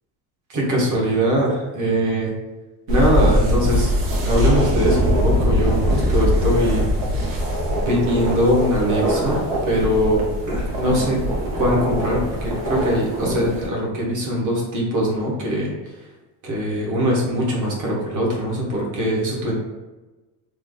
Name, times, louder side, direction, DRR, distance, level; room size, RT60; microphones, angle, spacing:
voice 1, 0.5-2.3 2.9-3.9 4.2-6.8 7.8-10.2 10.5-11.2 11.6-15.7 16.4-19.5, equal, 45° right, -3 dB, 1.3 m, -21 dB
sound 1, 2.9-13.7, equal, 70° right, 1.1 m, -22 dB
3.4 x 2.1 x 3.8 m, 1.1 s
cardioid pair, 125°, 44 cm